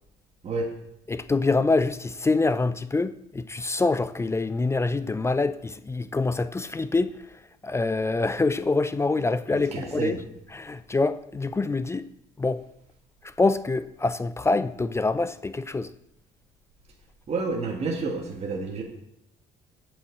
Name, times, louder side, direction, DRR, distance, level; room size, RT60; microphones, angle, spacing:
voice 1, 1.1-7.1 7.6-10.2 10.5-12.1 12.4-12.6 13.2-15.9, left 3 dB, 15° left, 0.4 m, -25 dB
voice 2, 9.5-10.2 17.3-18.8, right 3 dB, 40° right, 1.6 m, -29 dB
7.9 x 5.6 x 7.8 m
cardioid pair, 110°, 17 cm